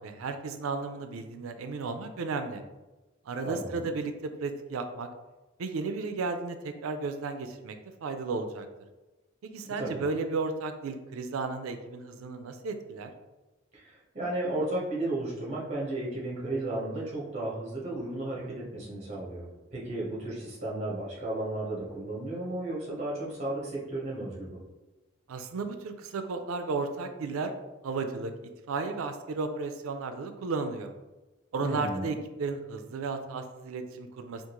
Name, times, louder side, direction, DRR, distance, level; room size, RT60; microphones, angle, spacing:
voice 1, 0.0-2.6 3.3-5.1 5.6-7.8 8.0-8.7 9.4-13.1 25.3-27.5 27.8-28.3 28.7-30.9 31.5-34.4, right 4 dB, 90° right, 7 dB, 0.4 m, -34 dB
voice 2, 3.4-3.9 9.8-10.0 13.7-24.6 31.6-32.1, right 2 dB, 35° right, -5 dB, 1.1 m, -34 dB
3.6 x 2.4 x 2.9 m, 1.1 s
head